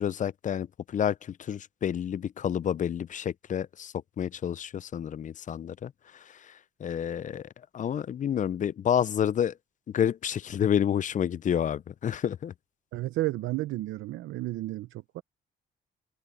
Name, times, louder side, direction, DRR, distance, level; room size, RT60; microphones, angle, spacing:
voice 1, 0.0-9.5 9.9-12.5, left 9 dB, 40° left, 0.4 m, -29 dB
voice 2, 12.9-15.2, right 17 dB, 85° right, 0.7 m, -32 dB
cardioid pair, 90°, 20 cm